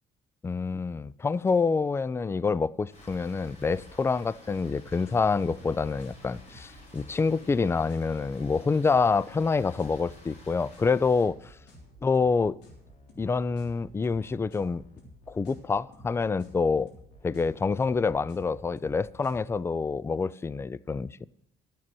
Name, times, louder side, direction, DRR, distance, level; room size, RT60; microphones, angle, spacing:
voice 1, 0.4-11.4 12.0-12.6 13.2-14.8 15.3-16.9 17.2-21.3, left 4 dB, 15° left, 0.3 m, -27 dB
Rain, 2.9-11.2, left 1 dB, 40° left, 5.6 m, -52 dB
sound 1, 4.6-19.6, equal, 80° left, 3.4 m, -52 dB
12.5 x 7.4 x 6.1 m
cardioid pair, 110°, 17 cm